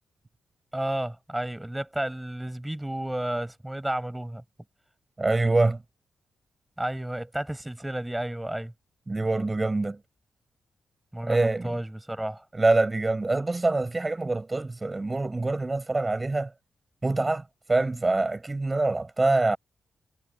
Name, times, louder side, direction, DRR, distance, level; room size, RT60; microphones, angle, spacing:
voice 1, 0.7-4.4 6.8-8.7 11.1-12.4, right 1 dB, 10° right, 6.6 m, -32 dB
voice 2, 5.2-5.8 9.1-10.0 11.2-11.8 12.5-16.5 17.0-17.4 17.7-19.6, right 2 dB, 25° right, 5.9 m, -25 dB
cardioid pair, 60°, 0 cm